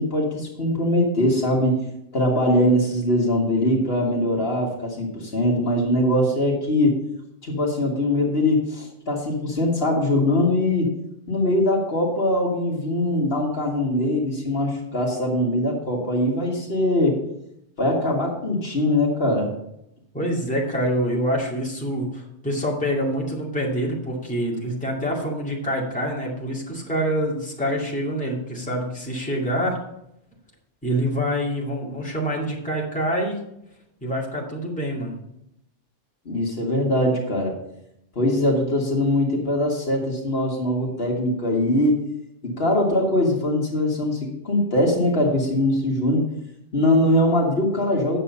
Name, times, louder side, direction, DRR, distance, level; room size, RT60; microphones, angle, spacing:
voice 1, 0.0-1.8 2.1-7.0 7.4-10.9 11.3-17.2 17.8-19.5 36.3-37.6 38.2-42.0 42.4-46.3 46.7-48.2, left 1 dB, 55° left, -1 dB, 2.0 m, -22 dB
voice 2, 20.1-29.8 30.8-33.4 34.0-35.1, equal, 5° left, -4 dB, 2.3 m, -26 dB
8.8 x 7.0 x 5.4 m, 0.79 s
omnidirectional pair, 1.2 m